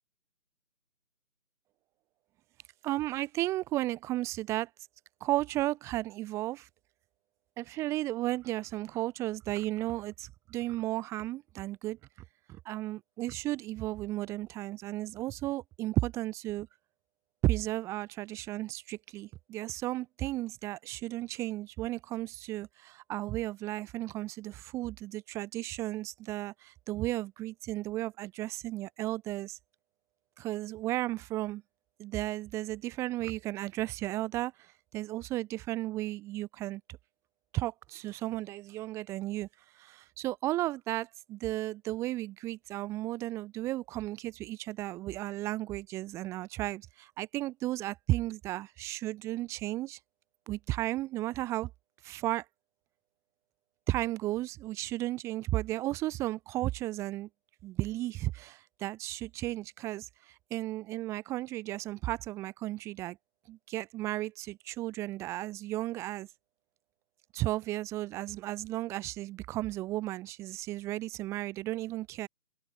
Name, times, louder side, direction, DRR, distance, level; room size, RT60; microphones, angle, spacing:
voice 1, 2.8-4.7 5.2-6.7 7.6-12.0 12.5-16.7 17.4-29.6 30.4-31.6 32.0-37.0 37.5-39.5 39.7-50.0 50.5-51.7 52.0-52.5 53.9-57.3 57.6-63.2 63.5-66.3 67.3-72.3, right 16 dB, 5° right, 4.5 m, -34 dB
figure-of-eight pair, 170°, 44 cm